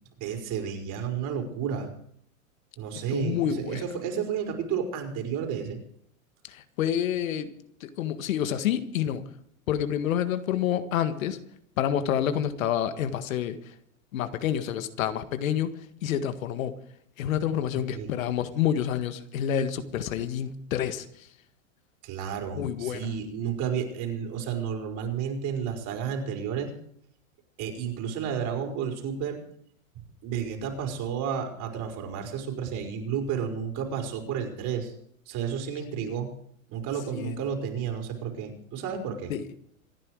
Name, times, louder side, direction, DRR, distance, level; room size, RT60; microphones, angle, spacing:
voice 1, 0.2-1.9 2.8-5.8 17.7-18.1 22.0-26.7 27.6-29.4 30.2-35.0 35.3-36.4 36.7-39.3, right 7 dB, 45° right, 3 dB, 5.3 m, -31 dB
voice 2, 3.0-3.8 6.5-7.5 7.8-9.2 9.7-11.4 11.8-13.6 14.1-15.7 16.0-16.8 17.2-21.1 22.6-23.1 37.2-37.4 39.3-39.4, left 10 dB, 70° left, 11 dB, 1.8 m, -28 dB
26.5 x 10.0 x 4.9 m, 0.66 s
hypercardioid pair, 110°, 42 cm